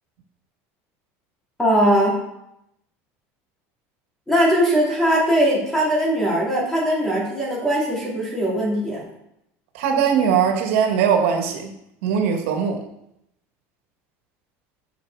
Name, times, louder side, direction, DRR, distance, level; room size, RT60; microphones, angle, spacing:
voice 1, 1.6-2.2 4.3-9.0, equal, 5° left, -5 dB, 2.8 m, -20 dB
voice 2, 9.7-11.7 12.0-12.8, right 7 dB, 85° right, 3 dB, 1.7 m, -20 dB
9.8 x 6.1 x 4.7 m, 0.81 s
cardioid pair, 165°, 7 cm